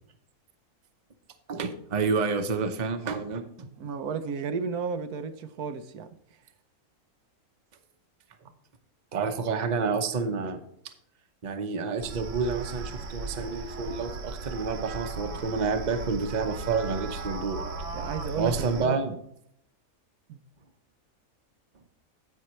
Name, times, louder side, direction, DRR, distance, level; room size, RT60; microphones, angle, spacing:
voice 1, 1.5-3.7 9.1-10.6 10.8-10.9 11.4-17.6 18.4-19.1, right 4 dB, 35° right, 0.9 m, -29 dB
voice 2, 3.8-6.1 17.9-19.0 20.3-20.4, right 6 dB, 85° right, 1.3 m, -33 dB
sound 1, 12.0-18.9, right 3 dB, 60° right, 1.2 m, -36 dB
15.5 x 5.6 x 3.1 m
omnidirectional pair, 1.5 m